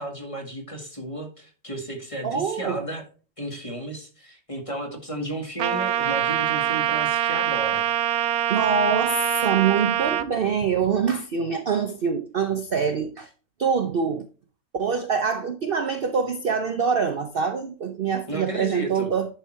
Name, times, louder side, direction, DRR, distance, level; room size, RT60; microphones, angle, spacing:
voice 1, 0.0-3.0 3.4-7.8 18.3-19.1, right 1 dB, 20° left, 2 dB, 1.9 m, -33 dB
voice 2, 2.2-2.8 8.5-13.3 13.6-14.3 14.7-19.3, right 6 dB, 50° right, 7 dB, 0.8 m, -25 dB
Trumpet, 5.6-10.3, right 11 dB, 80° right, 1.1 m, -24 dB
11.0 x 4.6 x 4.4 m, 0.37 s
omnidirectional pair, 1.6 m